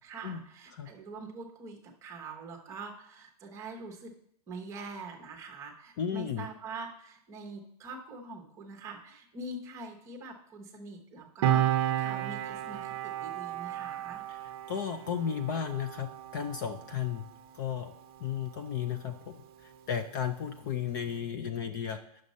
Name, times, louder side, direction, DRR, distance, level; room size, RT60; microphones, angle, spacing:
voice 1, 0.0-4.1 4.5-14.2, right 3 dB, 15° right, 2 dB, 1.0 m, -44 dB
voice 2, 6.0-6.5 14.3-17.3 17.5-17.9 18.2-22.2, left 8 dB, 35° left, 7 dB, 0.5 m, -34 dB
Piano, 11.4-18.4 18.7-18.9, right 11 dB, 40° right, 0.7 m, -33 dB
9.5 x 6.4 x 4.1 m, 0.71 s
supercardioid pair, 170°, 19 cm